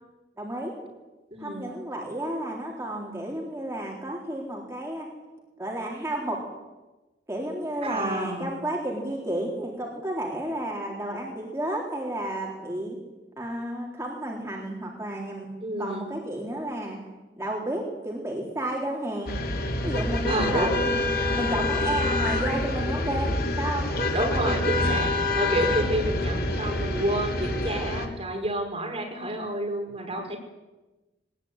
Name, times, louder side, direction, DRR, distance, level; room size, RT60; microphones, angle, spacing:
voice 1, 0.4-0.8 1.4-5.1 5.6-6.4 7.3-13.0 13.4-15.5 15.8-17.0 17.4-19.4 19.8-20.9 21.3-23.8, right 1 dB, 15° right, -2 dB, 3.9 m, -32 dB
voice 2, 1.3-1.7 7.8-8.6 15.6-16.1 20.3-20.8 24.1-30.4, right 1 dB, 35° right, 2 dB, 5.3 m, -29 dB
sound 1, 19.3-28.1, left 2 dB, 55° left, 3.2 m, -26 dB
21.5 x 20.0 x 9.8 m, 1.1 s
head